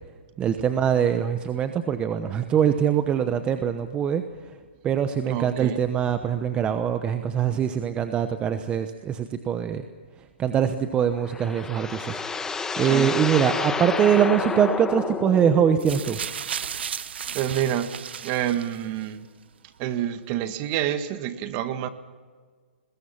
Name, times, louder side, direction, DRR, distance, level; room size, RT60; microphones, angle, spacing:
voice 1, 0.4-4.2 4.8-9.8 10.4-16.2, right 8 dB, 15° right, 9 dB, 1.0 m, -23 dB
voice 2, 5.3-5.9 12.9-13.2 16.8-17.0 17.3-17.9 18.2-19.3 19.8-21.9, right 11 dB, 35° right, 10 dB, 1.7 m, -28 dB
sound 1, 11.0-16.2, left 4 dB, 10° left, 1.2 m, -30 dB
sound 2, 15.8-19.0 19.9-20.0, right 8 dB, 70° right, 0.9 m, -34 dB
26.5 x 21.0 x 5.9 m, 1.6 s
hypercardioid pair, 145°, 6 cm